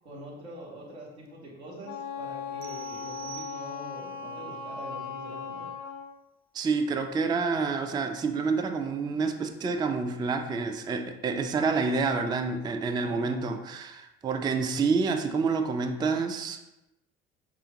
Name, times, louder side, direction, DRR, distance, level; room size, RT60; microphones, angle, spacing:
voice 1, 0.0-5.7 13.0-13.4, right 1 dB, 90° right, -4 dB, 1.0 m, -44 dB
Wind instrument woodwind instrument, 1.8-6.1, left 6 dB, 55° left, 0.5 m, -38 dB
sound 1, 2.6-4.2, right 11 dB, 70° right, 0.5 m, -46 dB
voice 2, 6.5-16.7, right 4 dB, 15° right, 6 dB, 0.3 m, -28 dB
4.8 x 2.4 x 2.9 m, 0.93 s
hypercardioid pair, 55°, 32 cm